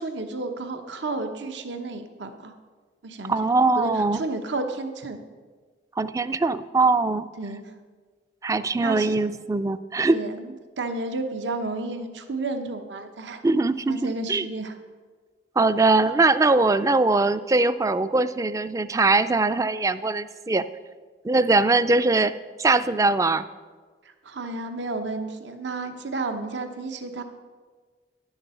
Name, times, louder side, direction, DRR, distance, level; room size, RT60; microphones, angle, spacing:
voice 1, 0.0-2.5 3.0-3.4 3.8-5.2 7.4-7.6 8.8-9.1 10.1-13.4 13.9-14.7 24.2-27.2, right 2 dB, 85° right, 7 dB, 1.0 m, -32 dB
voice 2, 3.3-4.2 6.0-7.3 8.4-10.2 13.4-14.5 15.6-20.6 21.2-22.3 22.6-23.5, right 3 dB, 20° right, 14 dB, 0.3 m, -21 dB
10.5 x 7.2 x 6.9 m, 1.4 s
head